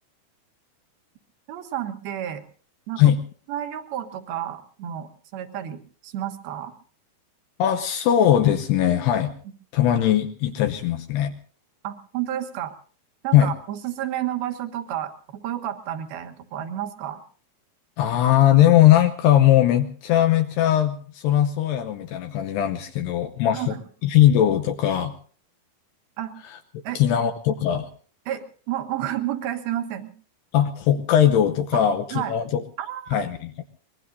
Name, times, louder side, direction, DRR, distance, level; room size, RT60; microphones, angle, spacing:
voice 1, 1.5-2.4 2.9-3.0 3.5-6.7 11.8-12.7 13.2-17.2 23.5-23.8 26.2-26.3 26.8-27.0 28.3-30.1 31.7-31.8 32.1-32.3 32.8-33.2, right 11 dB, 65° right, 7 dB, 3.0 m, -31 dB
voice 2, 7.6-9.3 9.7-11.3 13.3-13.5 18.0-23.7 24.0-25.1 27.0-27.9 30.5-32.6 33.1-33.6, left 11 dB, 75° left, 6 dB, 2.7 m, -19 dB
24.5 x 21.5 x 2.7 m, 0.43 s
omnidirectional pair, 5.1 m